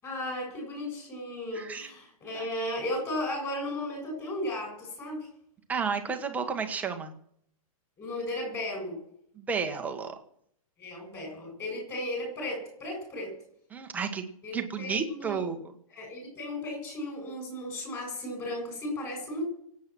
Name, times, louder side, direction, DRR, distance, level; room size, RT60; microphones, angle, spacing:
voice 1, 0.0-5.3 8.0-9.0 10.8-13.3 14.4-15.5 15.9-19.4, left 1 dB, 15° left, 2 dB, 7.6 m, -35 dB
voice 2, 1.5-1.9 2.3-2.5 5.7-7.1 9.4-10.1 13.7-14.2 14.5-15.7, right 5 dB, 10° right, 5 dB, 1.3 m, -32 dB
25.0 x 8.7 x 6.2 m, 0.68 s
hypercardioid pair, 165°, 19 cm